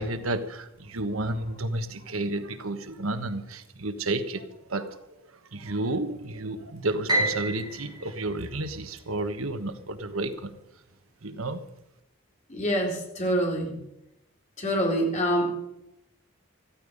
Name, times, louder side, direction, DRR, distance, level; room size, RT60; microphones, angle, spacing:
voice 1, 0.0-5.0 5.3-10.6 11.2-11.6, right 2 dB, 90° right, 9 dB, 1.3 m, -31 dB
Piano, 7.1-9.3, right 1 dB, 20° right, 7.5 m, -30 dB
voice 2, 12.5-13.8 14.6-15.5, equal, 35° left, 0 dB, 3.8 m, -26 dB
15.0 x 14.5 x 5.4 m, 0.85 s
head